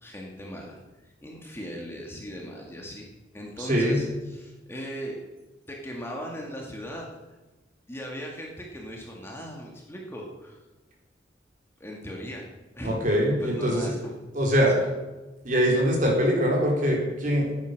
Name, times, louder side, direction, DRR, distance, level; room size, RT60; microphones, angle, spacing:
voice 1, 0.0-3.1 3.3-5.2 5.7-7.1 7.9-10.6 11.8-12.5 12.7-13.0 13.4-14.1 14.7-14.9, equal, 15° left, -1 dB, 2.1 m, -38 dB
voice 2, 3.6-4.0 12.8-13.9 14.3-14.7 15.4-17.6, equal, 45° right, -1 dB, 3.9 m, -23 dB
15.0 x 9.7 x 6.7 m, 1.1 s
head